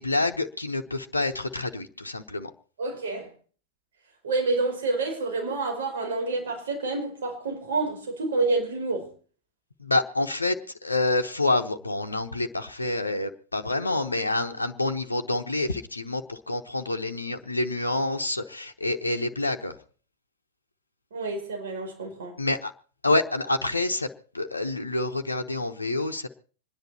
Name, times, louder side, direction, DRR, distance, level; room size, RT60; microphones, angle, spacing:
voice 1, 0.0-2.5 9.8-10.6 10.8-19.8 22.4-22.7 23.0-24.1 24.3-26.3, left 2 dB, 85° left, 1.0 m, -27 dB
voice 2, 2.8-3.3 4.2-9.1 21.1-22.4, right 3 dB, 65° right, 5.1 m, -28 dB
26.5 x 10.5 x 4.3 m
figure-of-eight pair, 90°, 0 cm